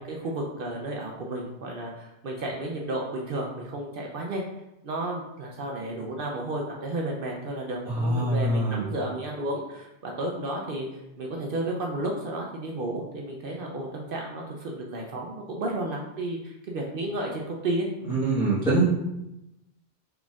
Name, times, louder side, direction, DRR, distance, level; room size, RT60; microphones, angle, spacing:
voice 1, 0.0-4.4 4.8-10.9 11.2-17.9, right 1 dB, 60° right, -1 dB, 0.8 m, -32 dB
voice 2, 7.9-8.8 18.0-18.8, right 2 dB, 5° right, -12 dB, 1.2 m, -24 dB
4.4 x 4.1 x 2.4 m, 0.90 s
omnidirectional pair, 1.1 m